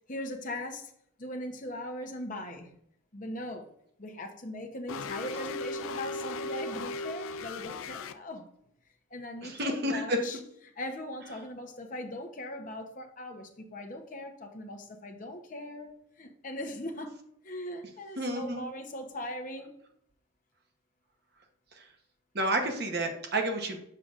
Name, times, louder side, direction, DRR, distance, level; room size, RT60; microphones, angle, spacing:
voice 1, 0.1-0.9 1.2-2.7 3.1-3.7 4.0-8.5 9.1-10.4 10.8-17.2 17.4-19.8, left 1 dB, 40° left, 3 dB, 0.9 m, -40 dB
sound 1, 4.9-8.1, left 2 dB, 80° left, 0.4 m, -37 dB
voice 2, 9.4-10.2 18.2-18.6 22.3-23.8, right 1 dB, 50° right, 3 dB, 1.0 m, -30 dB
6.6 x 5.8 x 2.5 m, 0.70 s
head